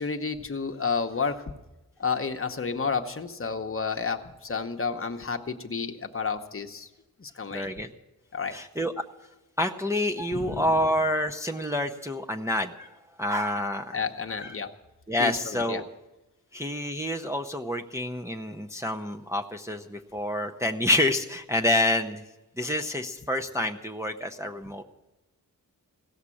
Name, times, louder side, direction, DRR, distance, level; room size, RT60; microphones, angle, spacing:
voice 1, 0.0-1.4 2.0-6.9 7.2-7.7 8.3-8.6 10.3-10.6 13.9-14.7 15.2-15.8, left 5 dB, 35° left, 5 dB, 0.9 m, -31 dB
voice 2, 7.5-7.9 8.5-8.9 9.6-14.0 14.4-14.5 15.1-15.8 16.5-22.2 22.6-24.8, left 1 dB, 10° right, 3 dB, 0.6 m, -28 dB
16.5 x 7.3 x 9.7 m, 1.0 s
wide cardioid pair, 140°, 36 cm